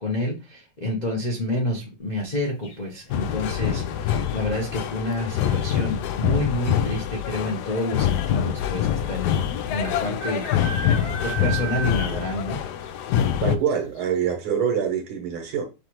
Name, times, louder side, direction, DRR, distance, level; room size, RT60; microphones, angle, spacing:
voice 1, 0.0-9.4 9.7-10.5 11.2-12.6, left 1 dB, 50° left, 0.5 m, -28 dB
sound 1, 2.6-3.1 4.9-5.3 5.6-5.7 5.9-6.4 7.2-7.3 7.5-7.6 9.1-9.2 10.2-12.5 12.8-12.9 13.4-13.5 14.0-14.1, right 3 dB, 70° left, 2.1 m, -33 dB
sound 2, 3.1-13.6, left 10 dB, 90° left, 0.8 m, -25 dB
voice 2, 13.4-15.6, right 8 dB, 80° right, 2.0 m, -25 dB
6.5 x 2.5 x 3.0 m
omnidirectional pair, 2.3 m